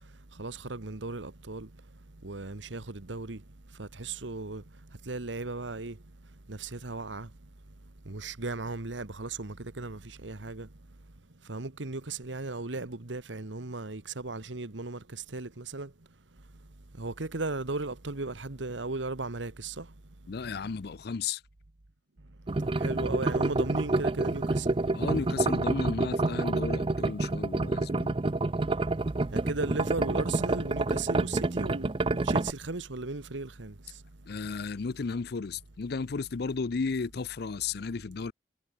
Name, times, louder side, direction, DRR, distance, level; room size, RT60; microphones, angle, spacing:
voice 1, 0.4-1.7 2.2-3.4 3.8-4.6 5.0-6.0 6.5-7.3 8.1-10.7 11.5-15.9 17.0-19.9 22.6-24.7 29.3-33.7, right 3 dB, 80° right, 1.5 m, -36 dB
voice 2, 20.3-21.4 24.9-28.2 34.3-38.3, left 4 dB, 60° left, 0.5 m, -34 dB
sound 1, 22.5-32.5, right 2 dB, 30° right, 0.5 m, -28 dB
head